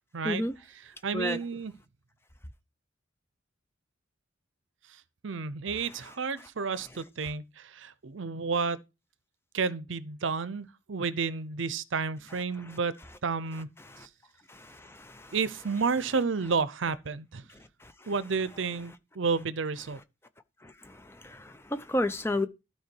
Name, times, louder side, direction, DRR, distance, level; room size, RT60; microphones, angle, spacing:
voice 1, 0.1-0.4 0.8-1.7 4.9-8.8 9.5-12.9 13.2-13.7 14.0-14.1 15.3-17.4 18.1-20.0, right 5 dB, 70° right, 0.7 m, -31 dB
voice 2, 14.5-15.3 17.8-17.9 20.6-22.5, left 1 dB, 10° left, 0.6 m, -32 dB
12.5 x 4.6 x 4.5 m
head